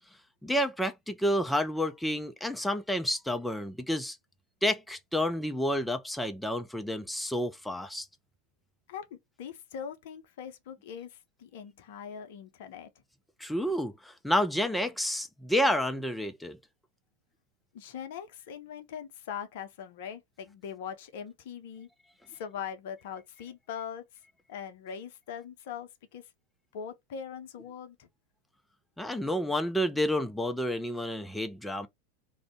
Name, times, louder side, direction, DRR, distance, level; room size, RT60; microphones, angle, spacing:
voice 1, 0.4-4.2 4.6-8.1 13.4-16.6 29.0-31.9, equal, 5° left, 0.4 m, -30 dB
voice 2, 8.9-12.9 17.7-21.9 22.3-24.0 24.5-26.3 26.7-28.1, left 7 dB, 55° left, 0.5 m, -41 dB
2.5 x 2.1 x 3.4 m
figure-of-eight pair, 90°, 0 cm